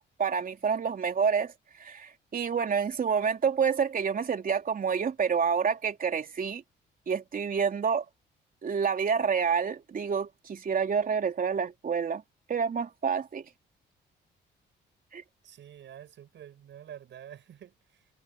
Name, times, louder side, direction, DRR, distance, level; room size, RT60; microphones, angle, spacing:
voice 1, 0.0-1.5 1.8-6.6 7.1-8.1 8.6-12.2 12.5-13.5 15.1-15.2, right 6 dB, 45° right, 3.4 m, -28 dB
voice 2, 15.4-18.1, right 10 dB, 65° right, 7.4 m, -48 dB
cardioid pair, 90°, 20 cm